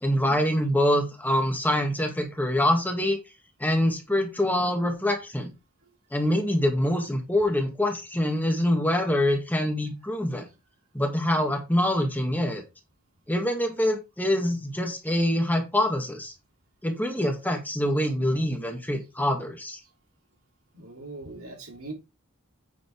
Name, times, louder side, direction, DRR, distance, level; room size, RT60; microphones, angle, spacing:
voice 1, 0.0-3.2 3.6-5.5 6.1-10.5 10.9-12.6 13.3-16.3 16.8-19.8, left 1 dB, 10° left, 3 dB, 2.0 m, -25 dB
voice 2, 20.7-21.9, right 2 dB, 75° right, 1 dB, 3.6 m, -41 dB
8.9 x 6.1 x 4.7 m, 0.25 s
head